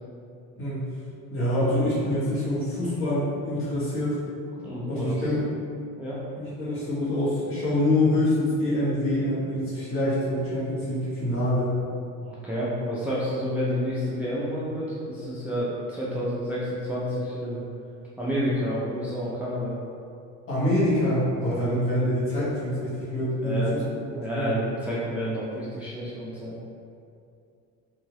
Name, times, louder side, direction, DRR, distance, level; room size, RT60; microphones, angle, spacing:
voice 1, 0.5-0.9 1.3-4.2 4.9-5.5 6.3-11.7 20.5-23.8 24.3-24.5, left 1 dB, 40° left, -9 dB, 1.3 m, -25 dB
voice 2, 4.6-5.2 6.0-6.2 12.2-17.6 18.2-19.7 21.6-21.7 23.4-26.5, equal, 5° right, -8 dB, 0.4 m, -29 dB
2.8 x 2.7 x 2.9 m, 2.5 s
cardioid pair, 120°, 32 cm